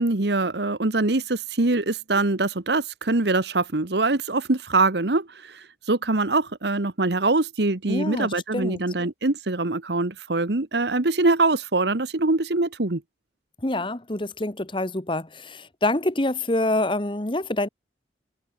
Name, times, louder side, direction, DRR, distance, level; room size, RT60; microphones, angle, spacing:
voice 1, 0.0-13.0, right 2 dB, 65° right, 1.3 m, -23 dB
voice 2, 7.9-8.8 13.6-17.7, left 2 dB, 25° left, 1.3 m, -26 dB
open air
head